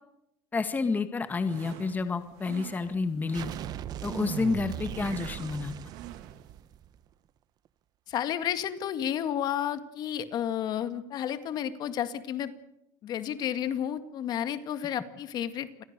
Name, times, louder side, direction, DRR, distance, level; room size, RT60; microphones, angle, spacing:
voice 1, 0.5-3.5 4.0-5.7, left 4 dB, 20° left, 9 dB, 1.9 m, -29 dB
sound 1, 1.2-6.6, right 13 dB, 75° right, 2.3 m, -49 dB
sound 2, 3.3-7.0, right 10 dB, 45° right, 1.0 m, -38 dB
voice 2, 8.1-12.5 13.0-15.8, left 10 dB, 45° left, 10 dB, 2.1 m, -31 dB
29.0 x 22.5 x 6.8 m, 0.80 s
cardioid pair, 135°, 9 cm